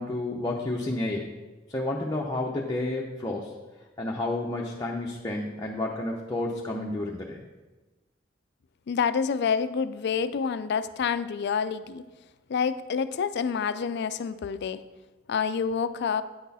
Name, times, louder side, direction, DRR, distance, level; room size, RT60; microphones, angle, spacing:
voice 1, 0.0-1.3 1.7-3.5 4.0-7.4, left 2 dB, 20° left, -2 dB, 0.7 m, -30 dB
voice 2, 8.9-12.0 12.5-14.8 15.3-16.2, left 6 dB, 55° left, 13 dB, 0.4 m, -28 dB
9.3 x 6.1 x 4.1 m, 1.2 s
head